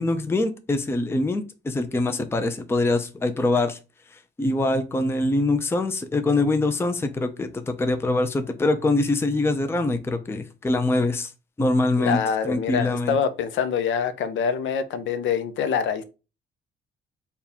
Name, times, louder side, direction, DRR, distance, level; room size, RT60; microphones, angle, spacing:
voice 1, 0.0-3.8 4.4-11.3 11.6-13.2, left 2 dB, 10° left, 0.5 m, -24 dB
voice 2, 12.0-16.0, left 7 dB, 75° left, 0.6 m, -25 dB
4.0 x 2.3 x 3.5 m
cardioid pair, 90°, 20 cm